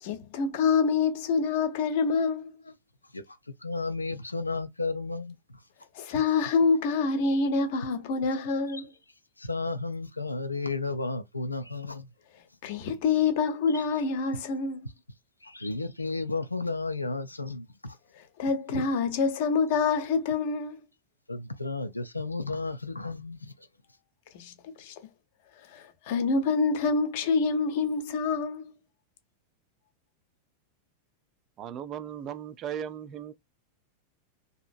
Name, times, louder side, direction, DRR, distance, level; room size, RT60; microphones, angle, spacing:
voice 1, 0.0-2.5 6.0-8.9 12.6-14.8 18.4-20.8 24.3-24.9 25.7-28.8, left 4 dB, 50° left, 0.7 m, -26 dB
voice 2, 3.1-5.6 8.7-8.8 9.4-12.1 13.7-13.8 15.4-18.0 21.3-23.5, left 3 dB, 85° left, 0.3 m, -33 dB
voice 3, 31.6-33.3, right 9 dB, 35° right, 0.3 m, -37 dB
2.8 x 2.6 x 2.5 m
figure-of-eight pair, 90°, 0 cm